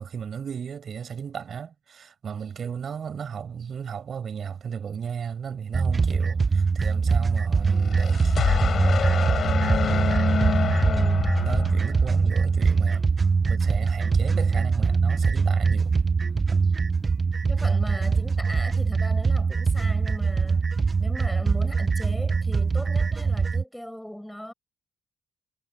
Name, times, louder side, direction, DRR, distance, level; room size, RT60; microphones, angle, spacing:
voice 1, 0.0-8.3 11.5-13.0 13.5-16.0, right 7 dB, 50° right, 5.4 m, -34 dB
sound 1, 5.7-23.6, right 5 dB, 30° right, 0.9 m, -23 dB
sound 2, 7.7-12.3, left 7 dB, 55° left, 4.4 m, -27 dB
voice 2, 10.8-11.5 17.5-20.7 21.0-24.5, equal, 5° left, 6.1 m, -38 dB
cardioid pair, 90°, 0 cm